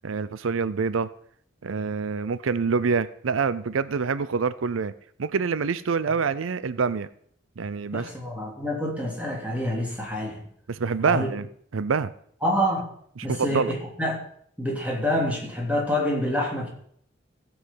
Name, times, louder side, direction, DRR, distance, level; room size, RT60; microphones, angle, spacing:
voice 1, 0.0-1.1 1.6-4.9 5.2-7.1 7.6-8.1 10.7-11.5 11.7-12.1 13.2-13.7, right 5 dB, 85° right, 15 dB, 0.5 m, -26 dB
voice 2, 7.9-10.4 11.1-11.3 12.4-12.9 13.2-14.2 14.6-16.7, left 1 dB, 5° right, -3 dB, 3.4 m, -27 dB
16.5 x 8.0 x 5.7 m, 0.64 s
head